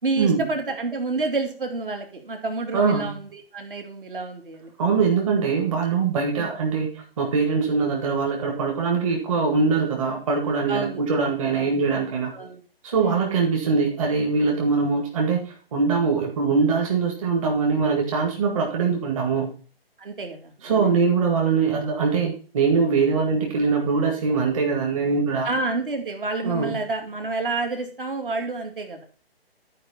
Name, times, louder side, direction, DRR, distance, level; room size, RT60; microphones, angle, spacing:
voice 1, 0.0-4.7 6.4-6.5 10.7-11.8 12.3-12.6 13.0-13.4 20.0-21.1 25.5-29.0, right 3 dB, 60° right, 4 dB, 2.2 m, -29 dB
voice 2, 2.7-3.1 4.8-12.3 12.8-19.5 20.6-25.5 26.4-26.8, right 5 dB, 35° right, 0 dB, 1.8 m, -22 dB
12.5 x 4.9 x 4.2 m, 0.39 s
figure-of-eight pair, 145°, 31 cm